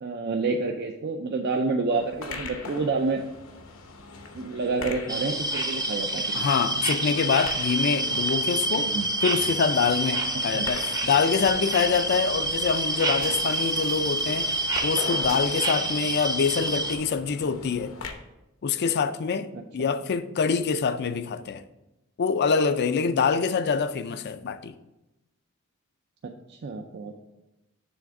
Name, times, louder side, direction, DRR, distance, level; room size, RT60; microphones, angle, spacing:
voice 1, 0.0-3.2 4.3-6.5 8.8-9.1 10.5-10.7 19.5-19.6 26.2-27.2, right 3 dB, 50° right, 0.4 m, -29 dB
sound 1, 1.9-18.1, left 3 dB, 75° left, 0.8 m, -41 dB
sound 2, 5.1-17.0, right 1 dB, 20° right, 0.7 m, -28 dB
voice 2, 6.3-8.9 9.2-14.5 14.8-17.9 18.6-19.5 19.7-21.6 22.2-24.7, left 5 dB, 50° left, 0.4 m, -25 dB
sound 3, 13.2-16.6, right 3 dB, 70° right, 1.8 m, -46 dB
7.1 x 3.5 x 5.8 m
head